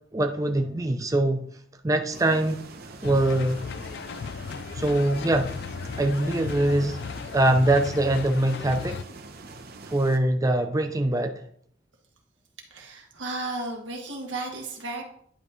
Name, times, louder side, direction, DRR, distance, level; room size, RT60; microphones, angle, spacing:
voice 1, 0.1-1.5 1.8-2.6 3.0-3.6 4.8-5.5 6.0-7.0 7.3-9.0 9.9-11.4, right 1 dB, 20° right, 5 dB, 0.5 m, -23 dB
sound 1, 2.1-10.2, right 3 dB, 55° right, 0.8 m, -44 dB
sound 2, 3.0-9.0, left 5 dB, 60° left, 0.4 m, -36 dB
voice 2, 12.7-15.0, right 2 dB, 80° right, 1 dB, 1.8 m, -34 dB
10.5 x 5.7 x 3.1 m, 0.65 s
head